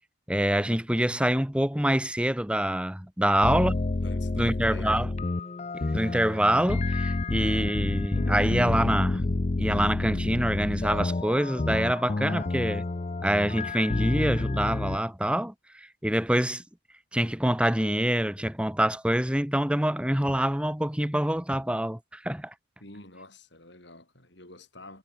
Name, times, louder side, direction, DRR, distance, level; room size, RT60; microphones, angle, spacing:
voice 1, 0.3-3.7 4.4-5.1 5.7-9.2 9.6-12.8 13.2-16.6 17.1-22.5, right 1 dB, 5° right, 1.2 m, -26 dB
voice 2, 3.2-3.7 4.0-5.1 22.8-25.0, left 2 dB, 60° left, 7.3 m, -48 dB
sound 1, 3.4-15.0, left 2 dB, 35° left, 0.5 m, -29 dB
head